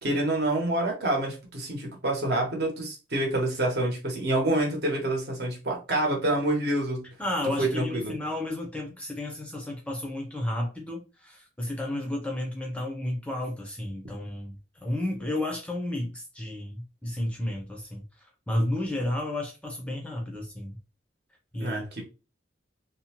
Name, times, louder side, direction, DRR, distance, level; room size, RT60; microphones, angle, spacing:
voice 1, 0.0-7.1 7.6-8.2 21.6-22.0, right 1 dB, 60° right, 0 dB, 0.9 m, -27 dB
voice 2, 7.2-14.6 14.8-18.0 18.5-20.8 21.5-22.0, left 1 dB, 5° left, 0 dB, 0.4 m, -32 dB
2.6 x 2.1 x 2.8 m, 0.31 s
head